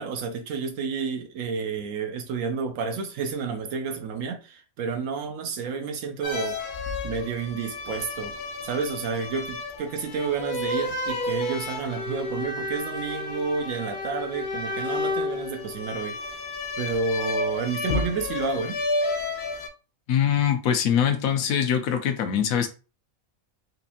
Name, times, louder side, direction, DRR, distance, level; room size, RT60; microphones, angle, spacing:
voice 1, 0.0-6.6 7.0-8.3 8.6-16.2 16.8-18.8, right 5 dB, 75° right, 1.0 m, -30 dB
sound 1, 6.2-19.7, left 2 dB, 60° left, 0.5 m, -31 dB
voice 2, 20.1-22.7, left 8 dB, 90° left, 1.1 m, -23 dB
4.0 x 2.5 x 2.7 m
omnidirectional pair, 1.4 m